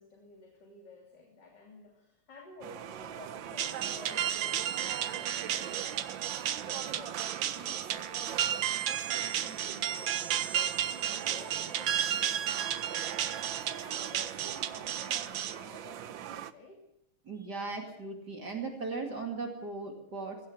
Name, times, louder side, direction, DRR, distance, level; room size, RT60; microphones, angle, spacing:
voice 1, 0.0-16.9, left 3 dB, 55° left, 1 dB, 3.7 m, -53 dB
sound 1, 2.6-16.5, right 10 dB, 65° right, 1.6 m, -42 dB
sound 2, 3.6-15.6, right 10 dB, 90° right, 1.9 m, -33 dB
voice 2, 17.2-20.4, right 3 dB, 50° right, 2 dB, 3.0 m, -37 dB
22.0 x 17.0 x 8.0 m, 0.79 s
omnidirectional pair, 2.3 m